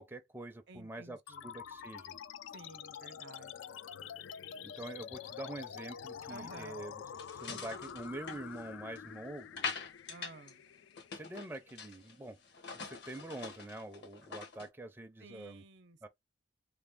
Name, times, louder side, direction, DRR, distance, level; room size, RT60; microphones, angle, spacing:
voice 1, 0.0-2.2 4.6-7.0 7.3-9.7 11.1-12.4 12.7-15.6 16.0-16.1, right 2 dB, 10° right, 0.4 m, -46 dB
voice 2, 0.7-1.5 2.5-3.8 6.3-6.8 10.1-10.6 15.2-16.1, right 3 dB, 65° right, 0.6 m, -53 dB
sound 1, 1.3-12.2, left 8 dB, 90° left, 0.3 m, -47 dB
sound 2, 7.2-9.1 9.6-10.5 10.8-12.1 12.4-14.7, left 5 dB, 60° left, 0.9 m, -43 dB
3.4 x 2.1 x 3.4 m
head